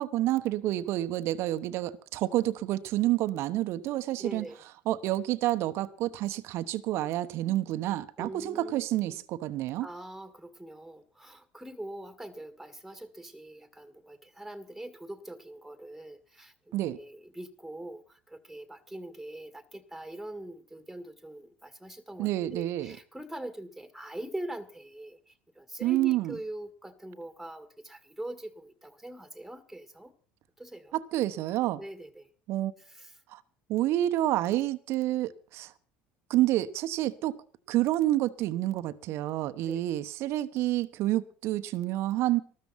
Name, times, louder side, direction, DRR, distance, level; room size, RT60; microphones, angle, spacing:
voice 1, 0.0-4.4 4.9-9.9 16.7-17.0 22.2-23.0 25.8-26.4 30.9-31.8 32.5-32.7 33.3-33.4 33.7-35.7 36.3-37.4 37.7-42.4, right 15 dB, 60° right, 1.0 m, -29 dB
voice 2, 4.2-4.6 8.2-9.2 9.8-30.1 30.6-31.0 31.8-32.3 32.8-33.1 39.7-39.8, right 1 dB, ahead, 2.0 m, -43 dB
14.0 x 13.5 x 5.8 m
hypercardioid pair, 70°, 5 cm